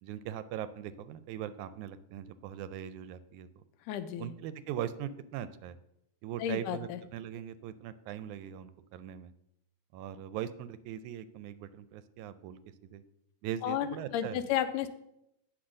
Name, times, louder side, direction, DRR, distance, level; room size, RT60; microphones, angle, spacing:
voice 1, 0.0-3.6 4.2-5.8 6.2-9.3 9.9-13.0 13.4-14.5, right 10 dB, 80° right, 13 dB, 1.9 m, -40 dB
voice 2, 3.9-4.3 6.4-7.0 13.6-14.9, left 10 dB, 90° left, 10 dB, 2.3 m, -32 dB
8.7 x 5.9 x 6.3 m, 0.80 s
omnidirectional pair, 3.6 m